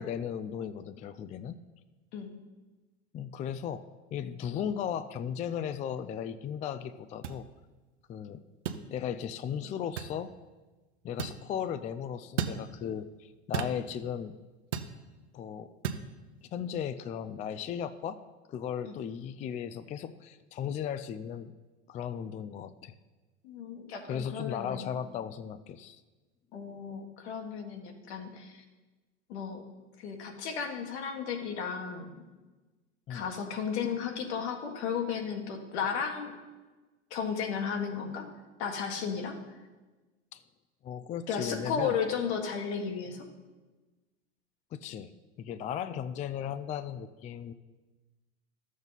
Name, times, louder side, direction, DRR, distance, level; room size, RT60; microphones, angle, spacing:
voice 1, 0.0-1.6 3.1-3.8 4.1-7.5 8.1-8.4 8.9-10.3 11.0-14.4 15.3-15.7 16.4-18.2 18.5-21.5 21.9-23.0 24.0-26.0 33.1-33.3 40.3-40.4 40.8-42.0 44.7-45.1 45.4-47.5, left 8 dB, 20° left, 12 dB, 0.3 m, -36 dB
sound 1, 7.2-7.4 8.7-8.8 10.0-10.2 11.2-11.4 12.4-12.6 13.5-13.8 14.7-14.9 15.8-16.0, right 8 dB, 85° right, 0.8 m, -33 dB
voice 2, 23.4-25.0 26.5-28.6 29.3-29.6 30.0-32.1 33.1-36.3 37.1-38.3 38.6-39.4 41.3-43.2, left 6 dB, 70° left, 3 dB, 1.8 m, -34 dB
12.0 x 7.2 x 4.1 m, 1.2 s
hypercardioid pair, 100°, 34 cm